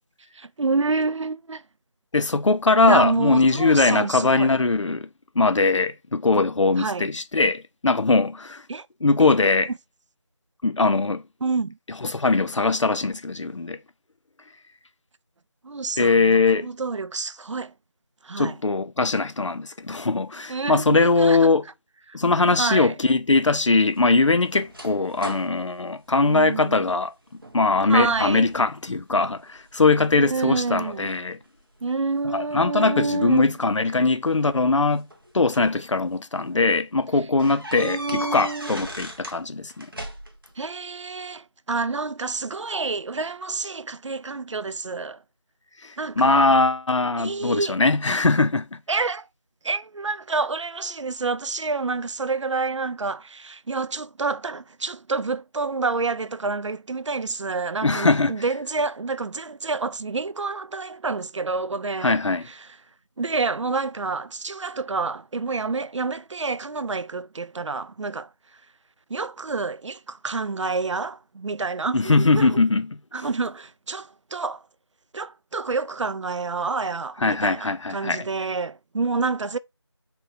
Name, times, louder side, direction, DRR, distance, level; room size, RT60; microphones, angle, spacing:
voice 1, 0.4-1.6 2.8-4.5 6.8-7.1 8.7-8.9 9.2-9.3 11.4-11.8 15.6-17.7 18.2-18.6 20.5-21.5 22.1-22.2 22.6-23.0 26.2-26.8 27.9-28.5 30.2-31.0 31.8-33.5 37.7-38.9 40.6-45.2 46.0-46.5 47.2-47.8 48.9-49.3 49.6-62.2 62.5-62.6 63.2-68.3 69.1-72.6 73.1-74.6 75.1-79.6, right 4 dB, 85° right, 0.4 m, -28 dB
voice 2, 2.1-5.1 5.4-8.6 9.0-9.7 10.6-11.2 12.0-13.8 16.0-16.7 18.4-21.7 22.1-27.1 27.5-31.4 32.3-35.1 35.3-39.9 45.8-48.8 57.8-58.4 62.0-62.5 71.9-73.0 77.2-78.3, left 3 dB, 90° left, 0.6 m, -21 dB
sound 1, 23.5-26.9 27.3-27.7 28.0-28.7 29.1-29.8 30.4-31.9 33.0-33.1 34.4-35.8 36.3-36.4 36.7-36.8 37.4-39.4 39.7-40.5, right 1 dB, 50° right, 1.0 m, -39 dB
4.3 x 2.4 x 3.9 m
figure-of-eight pair, 180°, 15 cm